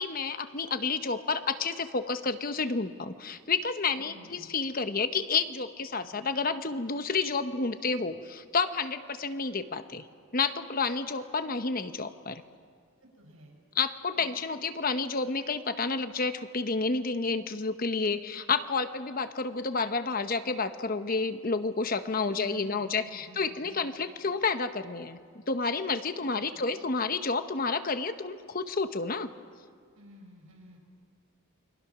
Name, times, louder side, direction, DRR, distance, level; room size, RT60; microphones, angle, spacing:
voice 1, 0.0-10.0 10.3-12.4 13.8-25.2 25.5-29.3, left 4 dB, 40° left, 10 dB, 1.0 m, -30 dB
voice 2, 3.9-4.6 13.0-13.6 22.3-24.0 26.2-26.6 29.9-30.8, right 1 dB, 75° right, -1 dB, 6.7 m, -52 dB
29.0 x 23.0 x 6.1 m, 2.1 s
head